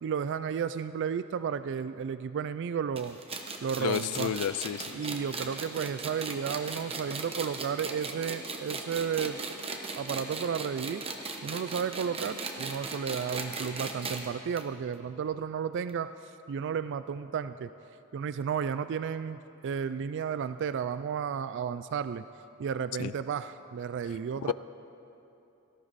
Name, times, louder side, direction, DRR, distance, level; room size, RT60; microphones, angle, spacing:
voice 1, 0.0-3.2 3.6-4.3 4.9-9.4 9.9-11.0 11.4-16.1 16.5-17.7 18.1-22.2 22.6-24.5, right 7 dB, 55° right, 13 dB, 0.3 m, -33 dB
sound 1, 3.0-14.3 14.6-14.7 14.9-15.0 15.9-16.0, right 4 dB, 25° right, 1.0 m, -37 dB
voice 2, 3.8-5.0 23.0-23.1 24.4-24.5, left 9 dB, 75° left, 17 dB, 0.3 m, -31 dB
17.5 x 14.0 x 4.1 m, 2.9 s
head